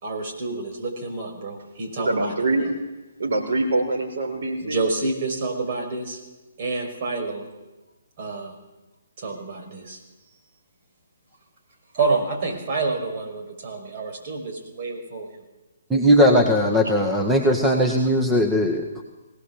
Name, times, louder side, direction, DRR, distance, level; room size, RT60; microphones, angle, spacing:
voice 1, 0.0-2.3 4.6-6.2 6.6-7.5 8.2-8.5 9.2-10.0 11.9-15.4, right 3 dB, 40° right, 2 dB, 5.9 m, -28 dB
voice 2, 2.0-2.7 3.2-4.8, right 2 dB, 60° right, 3 dB, 4.3 m, -24 dB
voice 3, 15.9-19.0, equal, 5° right, 2 dB, 1.8 m, -19 dB
21.0 x 18.0 x 7.4 m, 1.1 s
figure-of-eight pair, 135°, 0 cm